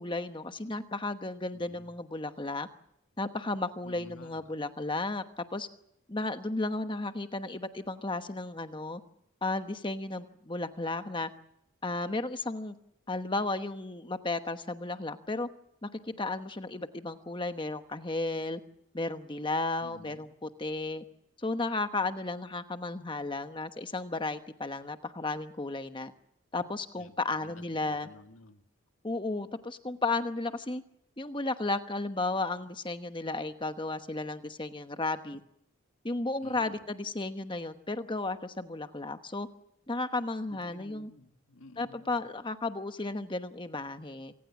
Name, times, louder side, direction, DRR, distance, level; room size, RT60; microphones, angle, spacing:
voice 1, 0.0-2.7 3.2-5.7 6.1-9.0 9.4-11.3 11.8-12.7 13.1-15.5 15.8-18.6 18.9-21.0 21.4-26.1 26.5-28.1 29.0-30.8 31.2-35.4 36.0-39.5 39.9-41.1 41.8-44.3, left 2 dB, 20° left, 9 dB, 1.1 m, -34 dB
voice 2, 1.5-1.9 3.8-4.5 19.8-20.3 27.0-28.6 36.4-36.8 40.5-42.2, left 2 dB, 70° left, 6 dB, 1.8 m, -52 dB
26.5 x 18.5 x 7.2 m, 0.77 s
head